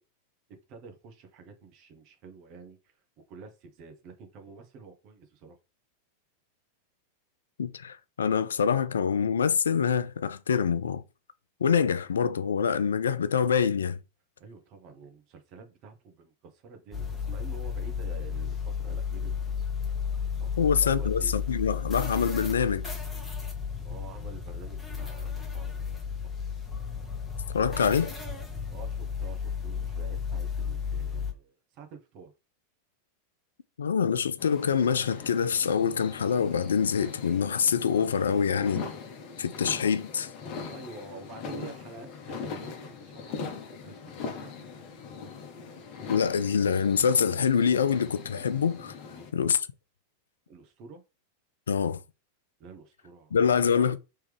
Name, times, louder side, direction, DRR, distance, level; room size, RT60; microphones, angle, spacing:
voice 1, 0.5-2.9 3.3-5.6 14.4-19.4 20.4-21.3 23.8-26.0 26.3-26.4 27.7-27.9 28.7-32.3 40.7-44.5 49.0-49.3 50.5-51.0 52.6-53.9, right 4 dB, 40° right, 1.1 m, -48 dB
voice 2, 7.6-11.0 11.6-14.0 20.6-22.9 27.5-28.1 33.8-38.8 39.4-40.3 46.1-48.9 49.3-49.6 51.7-52.0 53.3-54.0, left 7 dB, 70° left, 0.3 m, -25 dB
sound 1, 16.9-31.3, left 6 dB, 10° left, 1.3 m, -33 dB
sound 2, 34.4-49.3, left 5 dB, 40° left, 1.0 m, -41 dB
3.4 x 3.1 x 3.4 m
figure-of-eight pair, 90°, 0 cm